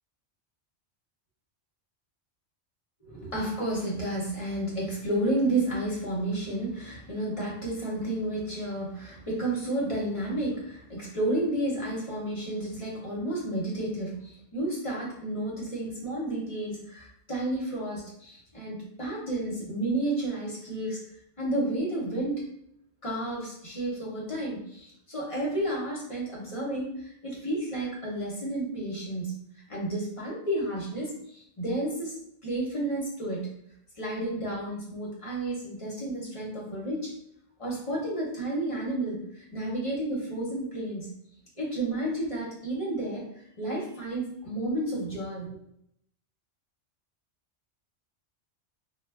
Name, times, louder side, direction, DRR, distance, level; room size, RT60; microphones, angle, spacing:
voice 1, 3.0-21.0 21.4-22.5 23.0-29.3 29.7-32.1 32.4-33.5 34.0-37.1 37.6-41.1 41.6-43.2 43.6-45.5, right 1 dB, 35° left, -4 dB, 0.6 m, -31 dB
2.2 x 2.0 x 3.3 m, 0.73 s
omnidirectional pair, 1.2 m